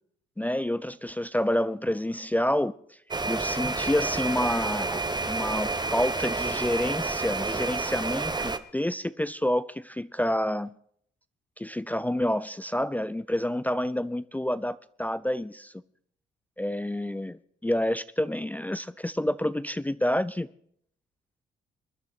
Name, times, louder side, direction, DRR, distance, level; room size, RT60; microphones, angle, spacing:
voice 1, 0.4-2.7 3.3-10.8 11.6-15.7 16.6-20.5, left 1 dB, 10° left, 0.4 m, -28 dB
sound 1, 3.1-8.6, right 3 dB, 20° right, 0.9 m, -29 dB
23.5 x 10.0 x 4.1 m
supercardioid pair, 75°, 21 cm